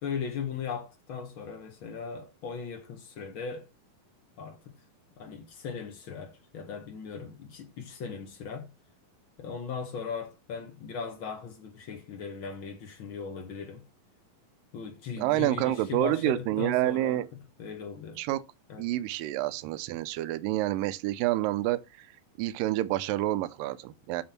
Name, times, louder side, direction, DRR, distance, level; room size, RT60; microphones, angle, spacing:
voice 1, 0.0-3.7 4.4-4.7 5.2-8.7 9.4-13.8 14.7-17.2 17.6-18.2 18.7-18.8, left 6 dB, 55° left, 1.4 m, -38 dB
voice 2, 15.2-17.3 18.2-18.4 18.8-22.1 22.4-24.2, right 15 dB, 80° right, 2.3 m, -28 dB
8.7 x 3.7 x 5.8 m
omnidirectional pair, 4.1 m